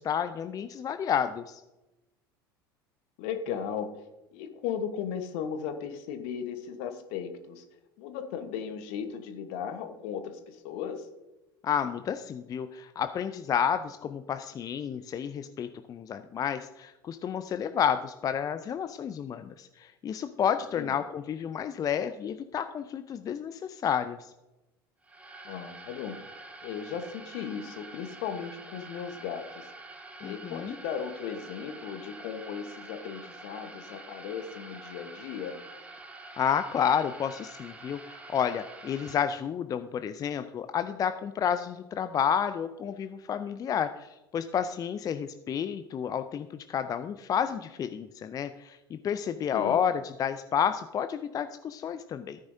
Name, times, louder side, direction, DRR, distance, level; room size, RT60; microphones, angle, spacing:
voice 1, 0.0-1.6 11.6-24.3 30.2-30.7 36.4-52.4, left 8 dB, 30° left, 10 dB, 0.5 m, -30 dB
voice 2, 3.2-3.9 4.3-7.6 8.0-11.1 20.7-20.9 25.4-26.2 26.6-29.7 30.2-35.6 49.5-49.8, left 7 dB, 55° left, 8 dB, 1.2 m, -36 dB
sound 1, 25.0-39.2, right 2 dB, 10° right, 1.2 m, -47 dB
14.5 x 9.6 x 2.7 m, 0.99 s
figure-of-eight pair, 75°, 12 cm